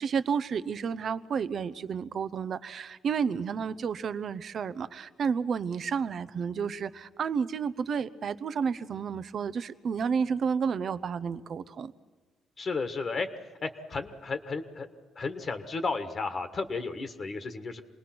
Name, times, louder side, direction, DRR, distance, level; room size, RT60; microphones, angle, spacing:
voice 1, 0.0-11.9, right 6 dB, 55° right, 15 dB, 0.8 m, -31 dB
voice 2, 12.6-13.3 13.6-14.9 15.1-17.8, left 4 dB, 45° left, 8 dB, 1.5 m, -33 dB
26.0 x 19.5 x 6.0 m, 1.3 s
cardioid pair, 90°, 0 cm